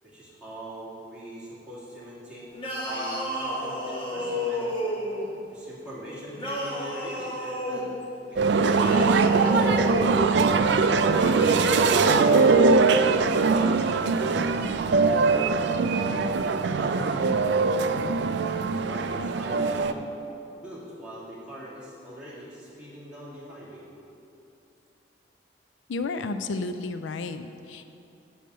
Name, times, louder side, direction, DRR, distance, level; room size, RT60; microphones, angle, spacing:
voice 1, 0.0-2.5 2.9-4.7 5.5-8.0 8.3-10.1 11.2-15.7 16.5-17.4 18.8-20.1 20.6-23.9, right 1 dB, 5° right, -10 dB, 2.5 m, -42 dB
sound 1, 2.5-5.3 6.3-7.9 8.6-10.2 11.0-12.5, equal, 30° left, 1.4 m, -30 dB
sound 2, 8.4-19.9, right 4 dB, 65° right, 0.4 m, -22 dB
voice 2, 25.9-27.9, left 3 dB, 85° left, 10 dB, 0.4 m, -32 dB
6.9 x 6.4 x 7.6 m, 2.7 s
head